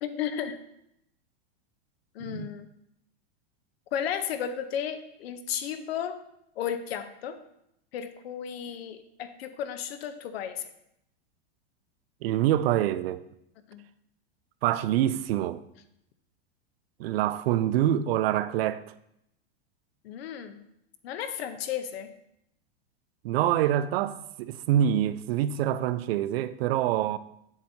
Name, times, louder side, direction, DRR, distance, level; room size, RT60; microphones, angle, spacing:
voice 1, 0.0-0.6 2.1-2.7 3.9-6.2 6.6-7.4 7.9-10.7 13.7-13.8 20.0-20.6 21.0-22.1, left 9 dB, 75° left, 0.8 m, -34 dB
voice 2, 12.2-13.2 14.6-15.6 17.0-18.9 23.2-27.2, right 11 dB, 70° right, 0.5 m, -26 dB
7.9 x 7.3 x 2.8 m
supercardioid pair, 145°, 31 cm